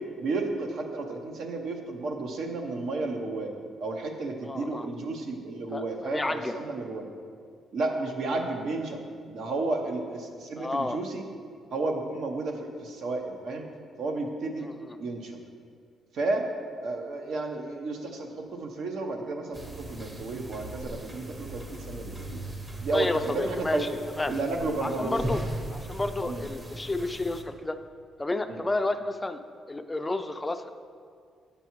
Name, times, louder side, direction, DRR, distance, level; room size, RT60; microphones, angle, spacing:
voice 1, 0.2-3.5 3.8-7.1 7.7-9.0 9.3-11.2 11.7-13.7 14.0-14.7 15.0-15.4 16.1-16.4 16.8-22.4 22.8-23.9 24.3-25.4 26.2-26.4 28.5-28.6, right 3 dB, 70° right, 3 dB, 0.8 m, -32 dB
voice 2, 4.4-4.9 5.7-6.6 10.6-11.0 14.6-15.0 22.9-23.9 24.2-24.3 24.8-25.4 25.7-27.8 28.2-29.4 29.7-30.7, left 2 dB, 15° left, 9 dB, 0.3 m, -31 dB
sound 1, 19.5-27.4, right 1 dB, 25° right, 0.9 m, -38 dB
8.2 x 6.8 x 3.0 m, 2.1 s
cardioid pair, 90°, 0 cm